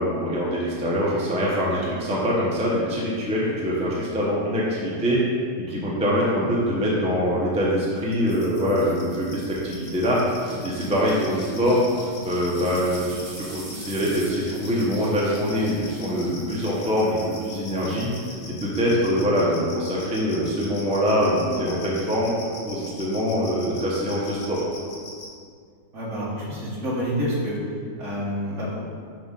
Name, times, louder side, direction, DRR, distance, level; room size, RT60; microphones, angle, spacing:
voice 1, 0.0-5.2 5.6-11.8 12.2-18.1 18.5-22.3 22.7-24.6, equal, 5° right, -6 dB, 0.7 m, -24 dB
sound 1, 8.1-25.3, left 3 dB, 80° left, 1.7 m, -41 dB
sound 2, 8.3-18.8, right 1 dB, 75° right, 2.0 m, -43 dB
voice 2, 25.9-27.5 28.0-28.7, equal, 45° right, -6 dB, 1.6 m, -28 dB
6.0 x 3.7 x 5.3 m, 2.1 s
omnidirectional pair, 1.8 m